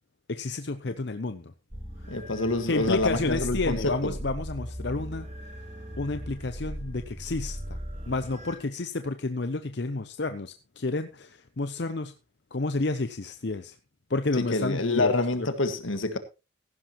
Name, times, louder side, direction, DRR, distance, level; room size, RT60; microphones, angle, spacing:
voice 1, 0.3-1.5 2.7-5.3 6.0-7.8 8.1-12.1 12.5-13.8 14.1-15.5, left 3 dB, 55° left, 0.7 m, -30 dB
sound 1, 1.7-8.6, equal, 35° right, 3.7 m, -38 dB
voice 2, 2.1-4.1 14.4-16.2, left 2 dB, 80° left, 1.8 m, -27 dB
15.5 x 11.5 x 3.1 m
head